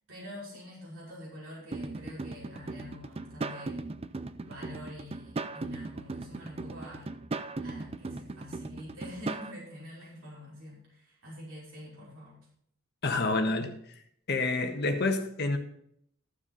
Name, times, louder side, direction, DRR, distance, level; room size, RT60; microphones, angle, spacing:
voice 1, 0.1-3.9 4.3-7.1 7.6-12.4, left 1 dB, 65° right, -6 dB, 5.4 m, -46 dB
Indian Fill, 1.7-9.5, right 3 dB, 30° right, 0.5 m, -38 dB
voice 2, 13.0-13.8 14.3-15.6, left 3 dB, 50° left, 5 dB, 1.5 m, -28 dB
14.5 x 7.2 x 4.0 m, 0.67 s
head